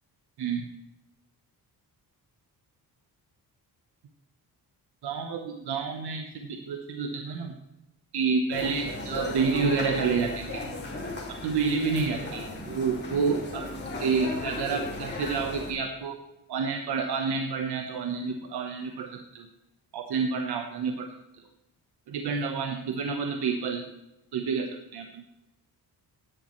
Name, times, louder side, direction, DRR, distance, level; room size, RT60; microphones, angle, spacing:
voice 1, 5.0-7.5 8.1-10.6 11.3-13.7 14.0-16.2 16.5-19.5 19.9-21.1 22.1-23.8 24.3-25.2, right 5 dB, 80° right, 4 dB, 1.2 m, -29 dB
sound 1, 8.5-15.7, left 2 dB, 25° left, 2.7 m, -36 dB
16.0 x 11.5 x 3.2 m, 0.91 s
wide cardioid pair, 175°, 39 cm